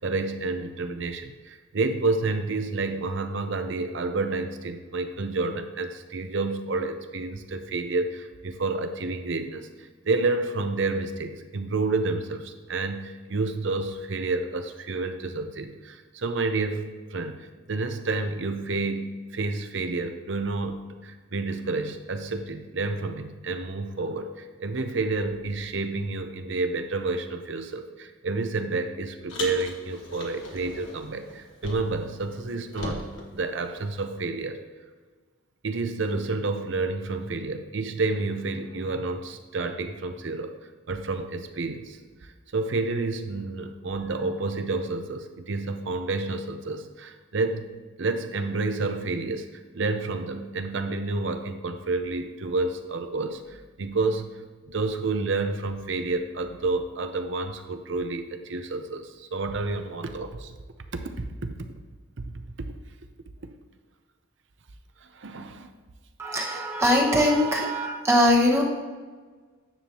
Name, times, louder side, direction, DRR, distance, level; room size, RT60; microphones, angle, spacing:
voice 1, 0.0-34.6 35.6-40.6 40.9-47.7 48.0-54.3 54.7-60.5 60.9-61.6 62.2-62.3 65.0-65.7, right 3 dB, 65° right, 7 dB, 0.7 m, -30 dB
Car, 29.3-32.1 32.4-34.2, left 2 dB, 65° left, 1.4 m, -39 dB
voice 2, 66.2-68.6, equal, 15° right, -2 dB, 1.0 m, -21 dB
9.9 x 7.3 x 2.9 m, 1.4 s
head